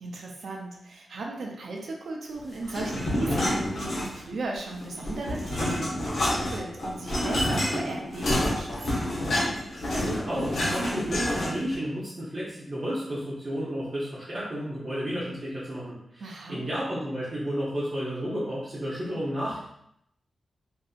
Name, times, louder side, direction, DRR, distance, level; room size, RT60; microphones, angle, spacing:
voice 1, 0.0-9.1 16.2-16.6, right 2 dB, 75° right, 0 dB, 0.5 m, -36 dB
sound 1, 2.7-4.4 4.7-11.7, left 1 dB, 70° left, 0.9 m, -28 dB
voice 2, 10.0-19.7, equal, 45° right, -9 dB, 0.8 m, -32 dB
2.7 x 2.5 x 2.4 m, 0.74 s
cardioid pair, 55°, 0 cm